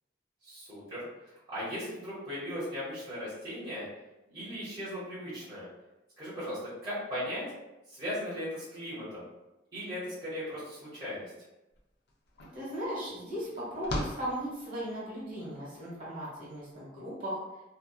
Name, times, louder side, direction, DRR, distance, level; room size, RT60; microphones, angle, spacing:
voice 1, 0.4-1.1 1.5-3.9 4.3-5.7 6.2-7.4 7.9-9.2 9.7-11.3, equal, 25° right, -12 dB, 0.9 m, -37 dB
sound 1, 11.7-11.8 12.1-15.1, left 1 dB, 60° left, 0.4 m, -40 dB
voice 2, 12.5-17.3, equal, 45° right, -7 dB, 1.2 m, -37 dB
2.7 x 2.2 x 2.2 m, 0.98 s
head